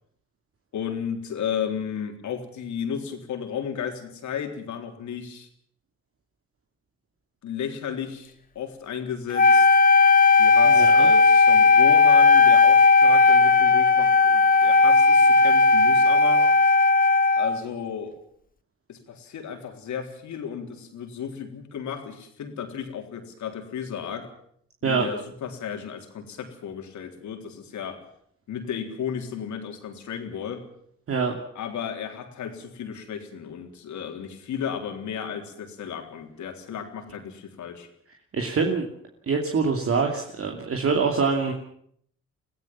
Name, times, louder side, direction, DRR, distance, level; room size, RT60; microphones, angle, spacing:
voice 1, 0.7-5.5 7.4-9.7 10.4-16.5 17.3-18.1 18.9-24.3 24.8-28.0 28.5-30.6 31.6-37.9, left 8 dB, 70° left, 4 dB, 3.8 m, -34 dB
Wind instrument woodwind instrument, 9.3-17.6, left 4 dB, 30° left, 0.9 m, -16 dB
voice 2, 10.7-11.1 24.8-25.1 31.1-31.4 38.3-38.9 39.3-41.5, right 5 dB, 50° right, 2 dB, 2.7 m, -24 dB
23.5 x 16.5 x 7.5 m, 0.67 s
cardioid pair, 90°, 30 cm